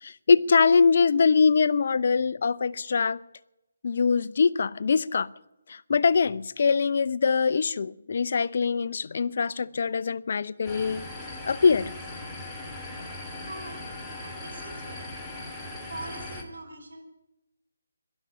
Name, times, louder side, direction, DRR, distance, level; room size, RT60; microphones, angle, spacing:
voice 1, 0.0-3.2 3.8-5.3 5.7-11.1 11.5-11.9, left 5 dB, 55° left, 18 dB, 0.6 m, -23 dB
sound 1, 10.6-16.4, left 2 dB, 5° left, 2.5 m, -39 dB
voice 2, 13.5-13.8 14.2-15.1 15.9-17.0, right 2 dB, 80° right, 6 dB, 5.3 m, -42 dB
12.5 x 11.5 x 9.9 m, 0.90 s
figure-of-eight pair, 160°, 0 cm